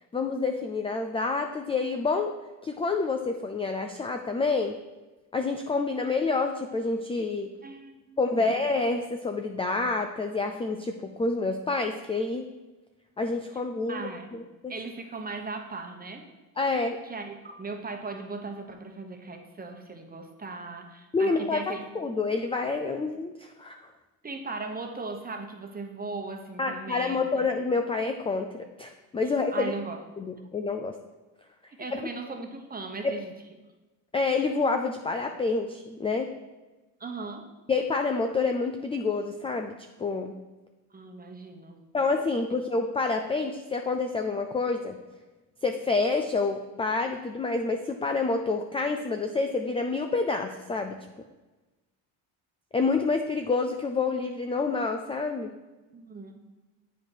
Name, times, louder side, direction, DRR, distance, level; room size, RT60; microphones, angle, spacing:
voice 1, 0.1-4.8 5.3-7.5 8.2-12.5 13.2-14.7 16.6-17.0 21.1-21.6 21.9-23.9 26.6-29.7 30.2-31.0 33.0-33.1 34.1-36.3 37.7-39.7 40.0-40.3 41.9-45.0 45.6-51.0 52.7-55.5, left 3 dB, 15° left, 5 dB, 0.4 m, -28 dB
voice 2, 7.6-8.6 13.9-14.4 14.7-16.3 17.0-21.9 24.2-27.5 29.5-30.0 31.8-33.3 37.0-37.5 40.9-41.9 55.9-56.4, right 3 dB, 20° right, 4 dB, 1.1 m, -38 dB
8.0 x 5.0 x 4.5 m, 1.2 s
supercardioid pair, 85°, 42 cm